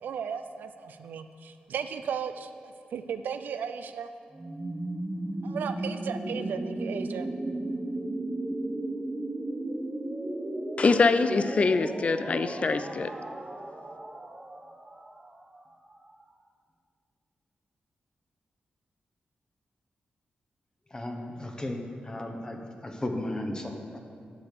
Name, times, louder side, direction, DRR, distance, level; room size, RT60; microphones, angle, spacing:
voice 1, 0.0-4.1 5.4-7.3, right 7 dB, 85° right, 9 dB, 0.4 m, -35 dB
sound 1, 4.3-16.1, right 1 dB, 20° right, 0.8 m, -35 dB
voice 2, 10.8-13.1, left 4 dB, 45° left, 12 dB, 0.4 m, -24 dB
voice 3, 20.9-24.0, left 1 dB, 25° left, 3 dB, 1.0 m, -35 dB
10.0 x 5.1 x 6.6 m, 2.3 s
cardioid pair, 80°, 3 cm